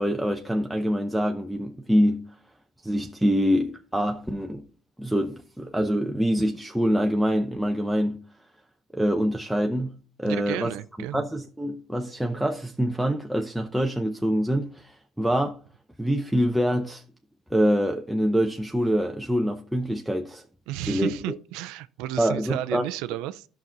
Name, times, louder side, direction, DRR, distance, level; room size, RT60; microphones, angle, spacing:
voice 1, 0.0-2.2 2.8-4.6 5.0-8.2 8.9-10.7 11.1-15.6 16.0-17.0 17.5-20.4 20.9-21.4 22.2-22.9, equal, 5° right, 0.7 m, -25 dB
voice 2, 10.3-11.3 20.7-23.5, right 14 dB, 90° right, 0.5 m, -33 dB
11.0 x 5.9 x 3.9 m
cardioid pair, 110°, 0 cm